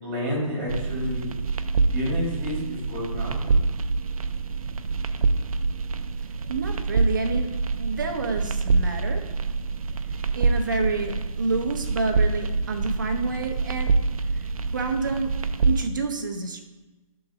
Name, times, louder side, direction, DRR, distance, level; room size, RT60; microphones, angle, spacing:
voice 1, 0.0-1.3 1.9-3.6, left 1 dB, 15° right, -5 dB, 2.0 m, -30 dB
sound 1, 0.7-15.9, right 4 dB, 75° right, 0.5 m, -26 dB
voice 2, 6.5-7.5 7.8-9.2 10.3-13.9 14.3-14.4 14.7-15.3 15.6-16.6, right 3 dB, 35° right, 4 dB, 0.6 m, -28 dB
6.1 x 3.9 x 4.8 m, 1.2 s
hypercardioid pair, 175°, 18 cm